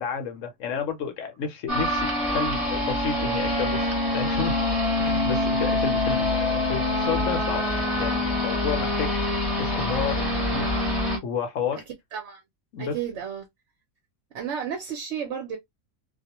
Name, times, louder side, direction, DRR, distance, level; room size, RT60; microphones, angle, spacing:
voice 1, 0.0-4.6 5.0-7.6 8.0-10.7 11.2-11.8 12.7-13.0, left 6 dB, 70° left, 0.9 m, -31 dB
sound 1, 1.7-11.2, left 1 dB, ahead, 0.8 m, -25 dB
voice 2, 12.1-12.4 12.8-13.4 14.3-15.6, right 8 dB, 65° right, 0.8 m, -32 dB
2.3 x 2.1 x 2.8 m
omnidirectional pair, 1.5 m